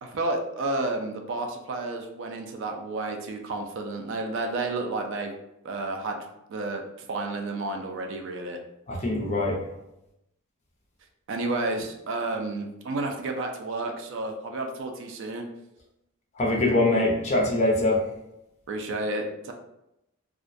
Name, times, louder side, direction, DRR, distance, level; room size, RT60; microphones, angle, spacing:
voice 1, 0.0-5.4 5.6-6.2 6.5-8.6 11.3-15.4 18.7-19.5, right 2 dB, 60° right, 4 dB, 0.3 m, -31 dB
voice 2, 8.9-9.6 16.4-18.0, left 2 dB, 30° left, -2 dB, 0.5 m, -23 dB
2.3 x 2.1 x 2.5 m, 0.85 s
head